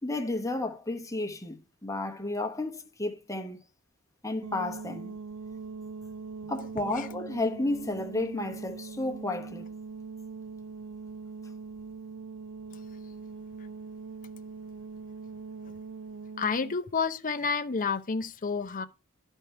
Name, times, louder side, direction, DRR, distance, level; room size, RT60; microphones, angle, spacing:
voice 1, 0.0-3.6 4.2-5.2 6.5-9.7, left 2 dB, 15° left, 1.1 m, -32 dB
sound 1, 4.4-16.8, right 4 dB, 60° right, 0.5 m, -42 dB
voice 2, 16.4-18.9, left 5 dB, 40° left, 0.7 m, -30 dB
11.0 x 4.5 x 5.6 m
head